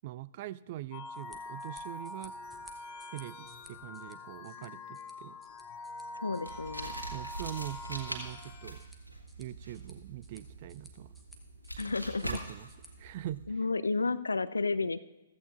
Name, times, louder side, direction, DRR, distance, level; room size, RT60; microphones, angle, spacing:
voice 1, 0.0-2.4 3.1-5.4 7.1-8.8 9.4-11.1 12.2-12.7 13.0-13.5, right 14 dB, 40° right, 18 dB, 0.3 m, -42 dB
sound 1, 0.9-8.9, left 2 dB, 30° left, 1.1 m, -45 dB
sound 2, 1.0-12.9, right 1 dB, 5° right, 1.2 m, -59 dB
voice 2, 6.1-6.9 11.8-12.4 13.5-15.0, left 3 dB, 75° left, 15 dB, 0.5 m, -31 dB
sound 3, 6.4-13.4, right 2 dB, 90° right, 1.7 m, -43 dB
15.0 x 14.0 x 2.6 m, 1.1 s
figure-of-eight pair, 115°, 0 cm